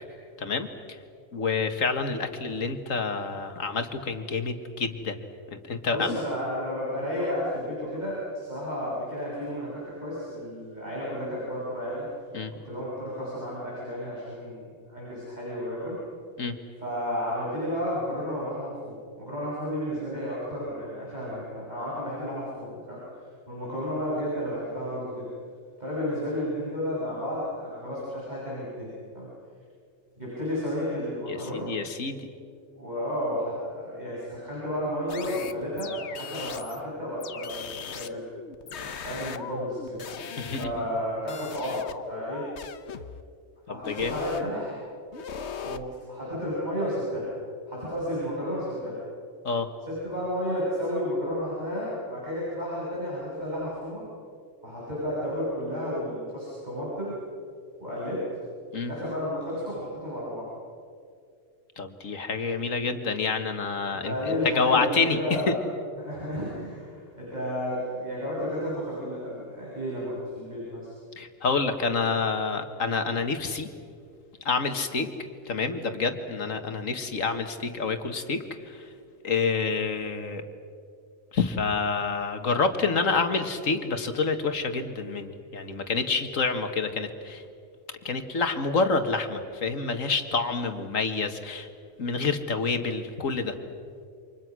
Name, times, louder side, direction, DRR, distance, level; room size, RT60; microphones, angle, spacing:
voice 1, 0.4-1.0 1.3-5.2 5.5-6.2 12.3-12.5 16.4-16.5 31.3-32.3 40.4-40.7 43.7-44.2 49.4-49.7 58.7-58.9 61.8-65.2 65.5-65.6 71.2-73.7 74.5-75.1 75.5-78.9 79.2-80.4 81.3-87.4 88.0-91.7 92.0-93.6, left 4 dB, 85° left, 7 dB, 2.1 m, -28 dB
voice 2, 5.9-12.1 12.5-16.0 16.8-23.0 23.5-25.3 25.8-29.3 30.2-31.7 32.7-37.6 37.9-38.2 38.6-40.0 40.6-41.8 42.1-42.5 43.7-44.8 45.6-47.3 47.7-49.0 49.9-54.1 54.6-57.1 57.8-58.3 58.8-60.5 63.9-65.6 66.0-70.9, equal, 35° right, -7 dB, 7.4 m, -32 dB
sound 1, 35.1-36.8 37.2-41.0 41.3-43.2 43.8-44.5 45.1-45.8, left 7 dB, 60° left, 1.2 m, -39 dB
29.5 x 26.5 x 6.2 m, 2.3 s
omnidirectional pair, 1.3 m